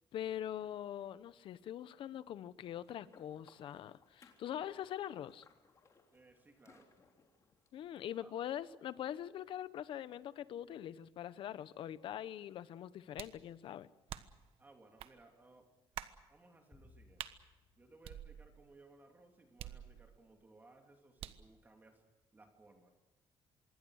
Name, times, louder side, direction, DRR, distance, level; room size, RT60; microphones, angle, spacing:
voice 1, 0.1-5.4 7.7-13.9, left 11 dB, 65° left, 15 dB, 1.0 m, -43 dB
sound 1, 2.6-7.7, left 4 dB, 35° left, 3.6 m, -67 dB
voice 2, 6.1-6.9 8.0-8.5 14.6-15.7 16.3-17.3 17.8-22.0 22.3-22.9, right 2 dB, 20° right, 4 dB, 2.9 m, -62 dB
sound 2, 13.2-13.5 14.1-14.5 15.0-15.1 15.9-16.2 17.2-17.4 18.0-18.7 19.6-20.3 21.2-21.5, right 11 dB, 85° right, 1.3 m, -47 dB
sound 3, 16.7-19.2, left 2 dB, 15° left, 7.5 m, -66 dB
26.0 x 22.5 x 6.5 m, 1.1 s
cardioid pair, 155°, 9 cm